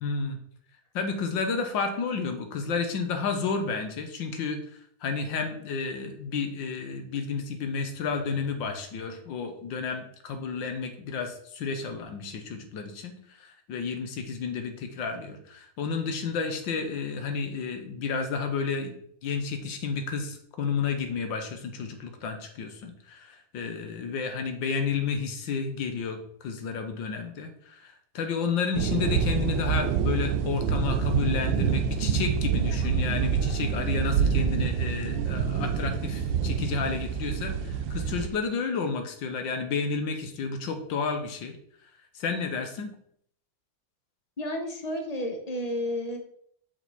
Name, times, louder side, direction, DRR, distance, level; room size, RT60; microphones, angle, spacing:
voice 1, 0.0-0.4 0.9-4.6 5.0-18.9 19.2-41.6 42.1-42.9, left 5 dB, 75° left, 6 dB, 1.6 m, -31 dB
sound 1, 28.8-38.3, right 7 dB, 80° right, 1.3 m, -27 dB
voice 2, 44.4-46.2, left 1 dB, 35° left, 3 dB, 0.6 m, -31 dB
6.2 x 5.1 x 4.1 m, 0.66 s
omnidirectional pair, 2.1 m